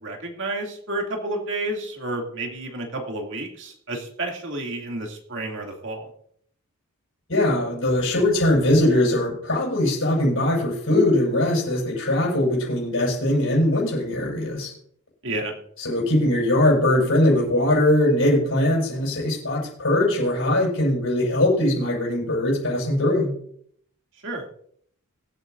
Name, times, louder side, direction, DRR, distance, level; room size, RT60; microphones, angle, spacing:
voice 1, 0.0-6.1 15.2-15.5 24.2-24.5, right 2 dB, 55° right, 1 dB, 2.5 m, -30 dB
voice 2, 7.3-14.7 15.8-23.3, left 1 dB, 65° left, -4 dB, 6.2 m, -21 dB
24.0 x 8.8 x 2.6 m, 0.65 s
head